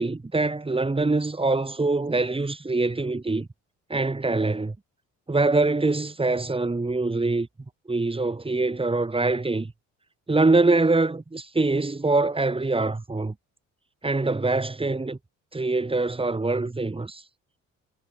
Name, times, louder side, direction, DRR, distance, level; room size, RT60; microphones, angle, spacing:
voice 1, 0.0-3.5 3.9-4.8 5.3-7.5 7.9-9.7 10.3-13.3 14.0-15.2 15.5-17.2, right 3 dB, 15° right, 7.3 m, -24 dB
cardioid pair, 90°, 31 cm